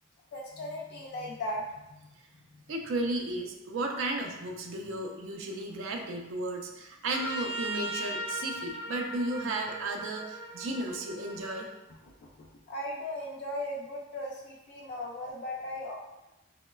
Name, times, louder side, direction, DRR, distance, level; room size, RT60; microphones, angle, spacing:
voice 1, 0.3-2.1 11.9-16.0, left 1 dB, 50° left, -2 dB, 0.3 m, -38 dB
voice 2, 2.7-11.7, right 2 dB, 70° right, 2 dB, 0.4 m, -34 dB
Trumpet, 7.1-11.7, right 1 dB, 10° right, 0.5 m, -38 dB
3.8 x 2.0 x 2.2 m, 0.96 s
head